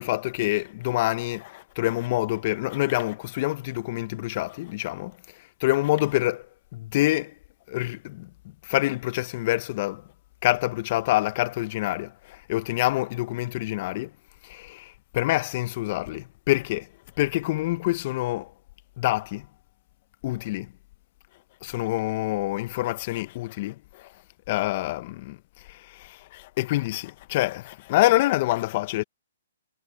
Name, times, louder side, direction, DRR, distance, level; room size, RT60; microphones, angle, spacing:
voice 1, 0.0-6.5 6.7-7.3 7.7-8.3 8.6-10.1 10.4-14.1 14.4-16.9 17.2-18.5 19.0-19.5 20.2-20.7 21.6-24.1 24.5-29.0, left 17 dB, 45° left, 1.5 m, -26 dB
hypercardioid pair, 130°, 0 cm